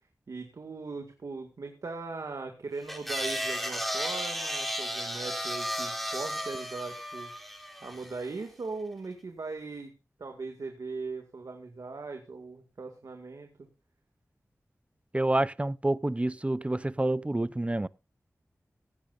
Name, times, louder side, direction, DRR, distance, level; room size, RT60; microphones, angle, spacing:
voice 1, 0.3-7.3 7.8-9.9 10.2-13.7, right 3 dB, 90° right, 2.1 m, -39 dB
sound 1, 2.9-8.2, equal, 5° left, 4.1 m, -34 dB
voice 2, 15.1-17.9, right 1 dB, 20° right, 0.6 m, -28 dB
17.0 x 15.5 x 2.5 m
wide cardioid pair, 65°, 6 cm